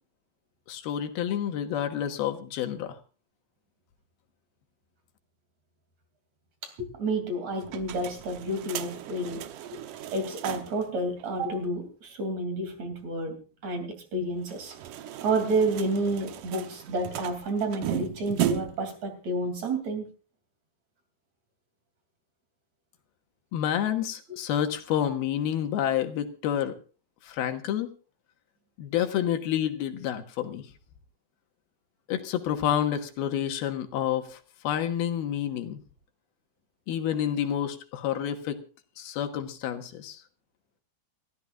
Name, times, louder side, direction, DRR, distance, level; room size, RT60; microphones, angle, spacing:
voice 1, 0.7-3.0 23.5-26.8 27.2-27.9 28.8-30.7 32.1-35.8 36.9-38.6 39.0-40.2, left 10 dB, 80° left, 7 dB, 3.2 m, -29 dB
voice 2, 6.6-9.4 10.1-13.4 13.6-14.8 15.2-20.1, right 2 dB, 50° right, 6 dB, 4.0 m, -30 dB
sound 1, 7.6-10.9 11.2-11.3 11.5-11.6 14.4-18.9, right 11 dB, 70° right, 2.2 m, -35 dB
29.5 x 14.0 x 2.5 m, 0.36 s
omnidirectional pair, 4.4 m